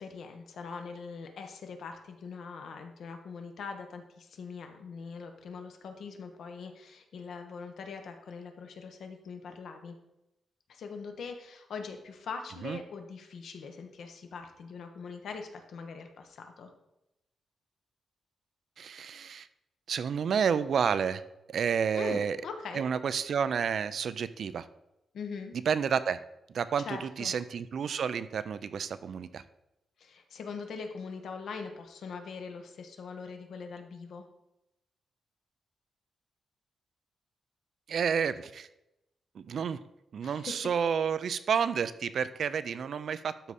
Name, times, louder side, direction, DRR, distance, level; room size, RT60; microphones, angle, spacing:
voice 1, 0.0-10.0 10.7-16.7 21.9-22.8 25.1-25.5 26.8-27.3 30.0-34.2 40.2-40.5, left 5 dB, 65° left, 5 dB, 1.1 m, -42 dB
voice 2, 18.8-19.5 19.9-21.2 21.5-22.4 22.7-24.7 25.5-26.2 26.5-29.4 37.9-38.7 39.3-39.8 40.1-43.3, right 7 dB, 50° right, 14 dB, 0.4 m, -30 dB
12.5 x 4.9 x 4.2 m, 0.91 s
wide cardioid pair, 175°, 0 cm